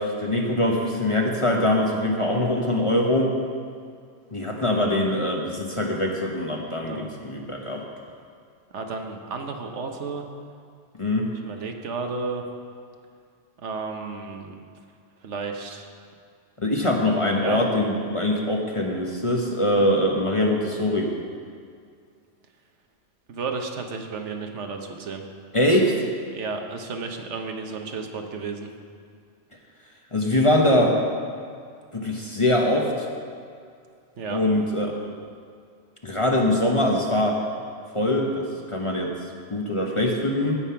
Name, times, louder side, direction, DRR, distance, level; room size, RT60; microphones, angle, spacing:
voice 1, 0.0-3.3 4.3-7.8 11.0-11.3 16.6-21.1 25.5-25.9 30.1-30.9 31.9-33.1 34.3-35.1 36.0-37.4 37.9-38.5 38.7-39.1 39.5-40.6, left 1 dB, 30° left, 0 dB, 1.0 m, -23 dB
voice 2, 8.7-10.3 11.4-12.4 13.6-14.6 15.2-15.9 17.4-17.6 23.3-25.2 26.3-28.7 34.2-34.4, right 4 dB, 70° right, 4 dB, 1.2 m, -32 dB
16.0 x 5.5 x 5.7 m, 2.3 s
omnidirectional pair, 1.3 m